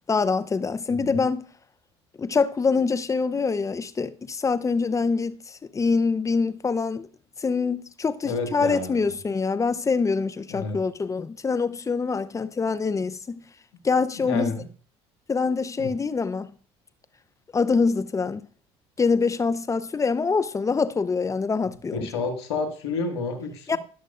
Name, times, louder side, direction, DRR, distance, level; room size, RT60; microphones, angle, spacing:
voice 1, 0.1-1.5 2.2-7.1 7.4-13.4 13.8-14.5 15.3-16.5 17.5-18.4 19.0-22.1 23.7-23.8, left 4 dB, 25° left, 0.6 m, -25 dB
voice 2, 8.2-9.1 10.5-10.8 14.1-14.7 15.8-15.9 21.9-23.8, left 4 dB, 90° left, 1.8 m, -30 dB
19.0 x 6.4 x 2.5 m
hypercardioid pair, 75°, 14 cm